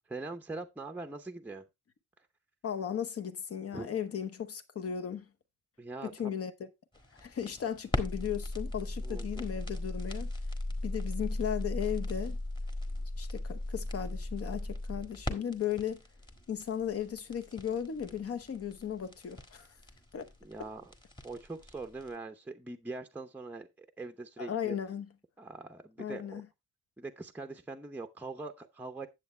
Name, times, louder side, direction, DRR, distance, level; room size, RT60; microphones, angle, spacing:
voice 1, 0.1-1.7 3.7-3.9 5.8-6.3 9.0-9.5 20.4-20.8 21.2-24.8 25.4-26.4 27.0-29.1, right 3 dB, 5° right, 0.7 m, -42 dB
voice 2, 2.6-5.3 6.0-6.7 7.1-10.3 10.8-12.4 13.2-16.0 16.5-19.8 20.1-20.3 24.4-25.1 26.0-26.5, left 9 dB, 50° left, 1.0 m, -36 dB
sound 1, 6.9-22.1, left 1 dB, 15° left, 1.5 m, -37 dB
9.6 x 7.7 x 3.2 m
wide cardioid pair, 155°, 30 cm